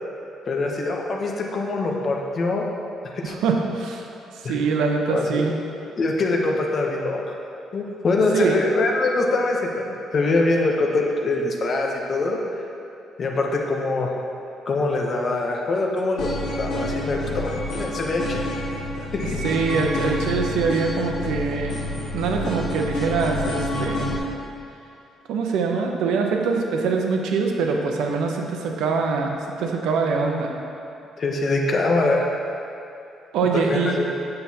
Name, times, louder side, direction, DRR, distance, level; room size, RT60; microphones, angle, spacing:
voice 1, 0.5-2.7 3.1-3.3 4.4-4.6 5.1-5.4 6.0-7.4 7.7-12.4 13.2-14.1 14.7-16.3 16.6-18.4 19.1-19.2 31.2-32.3 33.5-34.1, left 2 dB, 35° left, 0 dB, 0.7 m, -23 dB
voice 2, 3.2-4.0 4.4-5.5 8.3-8.6 19.4-21.8 22.1-24.2 25.3-30.5 33.3-34.0, right 4 dB, 85° right, 2 dB, 0.7 m, -23 dB
sound 1, 16.2-24.2, left 1 dB, 90° left, 1.6 m, -28 dB
8.0 x 6.5 x 2.8 m, 2.6 s
cardioid pair, 175°, 0 cm